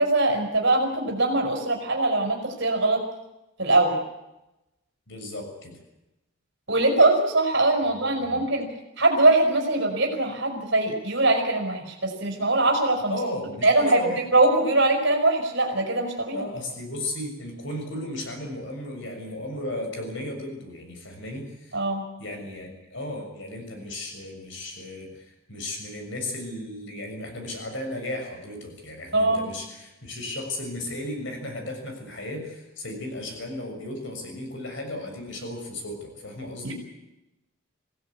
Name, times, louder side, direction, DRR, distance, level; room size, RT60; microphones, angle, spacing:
voice 1, 0.0-3.0 3.6-4.0 6.7-8.7 9.0-13.2 13.6-16.5 21.7-22.0 29.1-29.5 36.6-36.7, right 2 dB, 60° right, 2 dB, 5.2 m, -22 dB
voice 2, 5.1-5.8 7.8-8.5 13.1-14.2 16.3-21.8 22.2-36.7, left 1 dB, 60° left, 4 dB, 7.0 m, -35 dB
26.5 x 17.5 x 8.7 m, 0.94 s
head